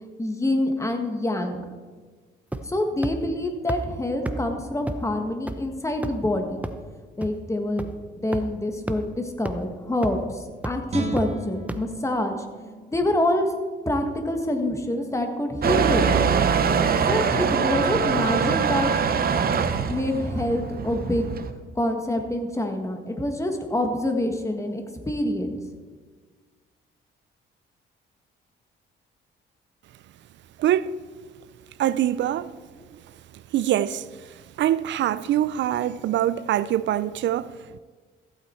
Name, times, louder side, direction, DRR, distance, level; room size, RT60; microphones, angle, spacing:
voice 1, 0.2-1.6 2.6-6.6 7.2-7.9 8.2-12.4 12.9-13.5 13.8-16.4 17.1-18.9 19.9-21.3 21.7-25.5 32.8-32.9, left 1 dB, 15° left, 1.6 m, -26 dB
sound 1, 2.5-2.8 3.0-3.1 3.7-3.8 4.2-4.3 4.9-5.0 5.5-5.6 6.0-6.2 6.6-6.7 7.2-7.3 7.8-7.9 8.3-8.4 8.9-9.0 9.4-9.5 10.0-10.2 10.6-10.7 11.2-11.3 11.7-11.8, right 1 dB, 5° right, 0.8 m, -29 dB
Guitar, 10.9-14.0 14.5-14.6, right 2 dB, 35° right, 1.9 m, -37 dB
Motor vehicle (road) / Engine starting / Accelerating revving vroom, 15.6-21.5, right 6 dB, 50° right, 0.9 m, -23 dB
voice 2, 30.6-30.9 31.8-32.5 33.5-34.1 34.6-37.5, right 11 dB, 65° right, 0.5 m, -23 dB
14.5 x 8.6 x 4.5 m
cardioid pair, 90°, 20 cm